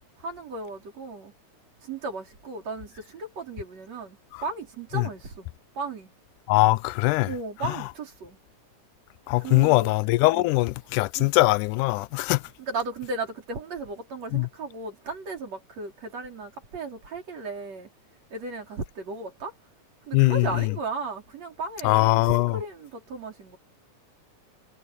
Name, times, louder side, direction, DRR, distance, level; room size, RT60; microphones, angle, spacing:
voice 1, 0.2-1.3 1.8-6.1 7.3-8.4 9.4-9.9 10.3-10.5 11.2-11.3 12.6-17.9 18.3-19.5 20.0-23.6, right 3 dB, 55° right, 5.7 m, -35 dB
voice 2, 6.5-7.3 7.6-7.8 9.3-12.4 14.3-14.5 20.1-20.7 21.8-22.6, left 21 dB, 90° left, 2.1 m, -22 dB
omnidirectional pair, 3.5 m